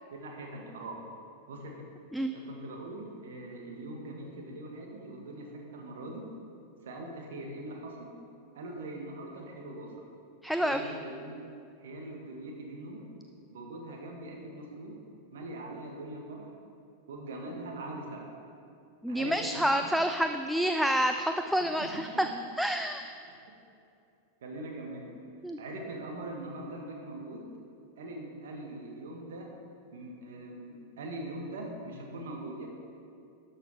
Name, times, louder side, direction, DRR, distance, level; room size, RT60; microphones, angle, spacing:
voice 1, 0.1-0.9 1.5-1.9 2.3-6.3 6.8-8.1 8.5-10.1 10.6-11.3 11.8-13.0 13.5-14.9 15.3-16.5 17.1-18.3 19.1-19.9 21.6-21.9 22.1-22.3 23.3-23.4 24.4-25.1 25.6-27.4 28.0-29.5 29.9-32.7, right 2 dB, 60° right, 0 dB, 1.6 m, -42 dB
voice 2, 10.4-10.8 19.0-22.3 22.6-23.2 25.4-25.6, equal, ahead, 6 dB, 0.3 m, -28 dB
12.5 x 6.5 x 4.8 m, 2.5 s
figure-of-eight pair, 90°, 0 cm